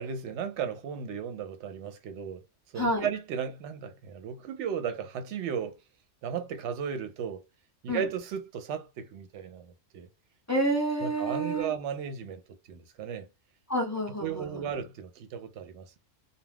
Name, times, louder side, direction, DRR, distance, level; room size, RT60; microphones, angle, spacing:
voice 1, 0.0-2.4 2.7-5.7 6.2-7.4 7.8-10.1 11.0-12.4 12.7-13.3 14.2-16.0, right 7 dB, 75° right, 0.9 m, -35 dB
voice 2, 2.8-3.1 7.9-8.1 10.5-11.7 13.7-14.7, right 1 dB, 20° left, 0.4 m, -29 dB
2.3 x 2.3 x 3.3 m
omnidirectional pair, 1.2 m